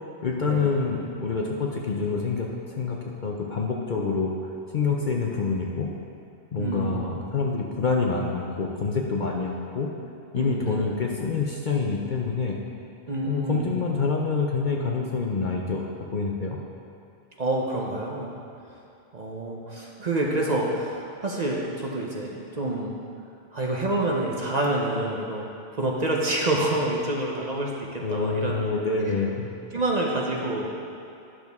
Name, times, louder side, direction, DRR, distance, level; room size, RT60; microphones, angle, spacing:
voice 1, 0.2-4.3 4.7-5.9 6.5-9.9 10.3-12.6 13.2-16.6 28.0-29.5, left 4 dB, 50° left, -1 dB, 0.7 m, -27 dB
voice 2, 6.6-7.2 10.3-10.9 13.1-13.8 17.4-18.3 19.1-23.0 23.5-28.6 29.7-30.7, right 2 dB, 40° right, -2 dB, 0.8 m, -28 dB
11.0 x 6.1 x 3.5 m, 2.6 s
omnidirectional pair, 1.2 m